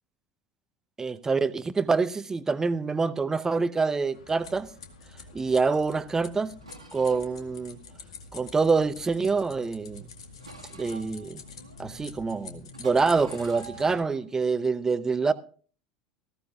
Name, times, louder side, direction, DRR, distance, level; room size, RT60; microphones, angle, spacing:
voice 1, 1.0-4.7 5.3-6.5 6.9-7.8 8.3-10.1 10.7-11.4 11.8-15.3, right 4 dB, 15° right, 0.7 m, -26 dB
sound 1, 4.1-14.0, left 4 dB, 70° left, 1.3 m, -47 dB
sound 2, 6.6-9.1 9.6-10.0 10.4-12.0 12.3-12.5 12.7-14.5, right 4 dB, 85° right, 1.7 m, -49 dB
19.0 x 14.5 x 2.4 m
figure-of-eight pair, 75°, 3 cm